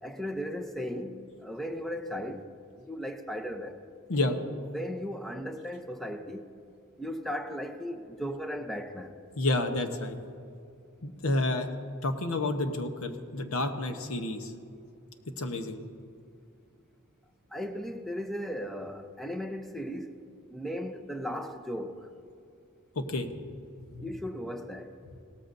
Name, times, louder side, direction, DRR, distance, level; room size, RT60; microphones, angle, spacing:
voice 1, 0.0-2.5 2.8-3.8 4.7-6.5 7.0-9.2 17.5-20.2 20.5-22.1 24.0-24.9, equal, ahead, 0.6 m, -36 dB
voice 2, 4.1-4.4 9.4-10.2 11.0-11.7 12.0-14.5 15.4-15.8 22.9-23.3 23.9-24.1, left 2 dB, 75° left, 0.9 m, -30 dB
18.0 x 13.5 x 2.6 m
head